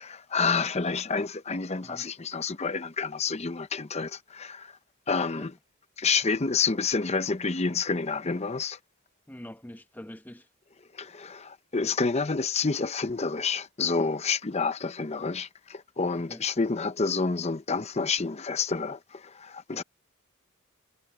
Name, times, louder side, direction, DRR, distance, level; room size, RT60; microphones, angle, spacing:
voice 1, 0.0-4.7 5.1-5.6 6.0-8.8 10.9-19.8, left 4 dB, 30° left, 0.7 m, -29 dB
voice 2, 9.3-10.4 16.1-16.4 19.7-19.8, equal, 10° left, 1.0 m, -44 dB
head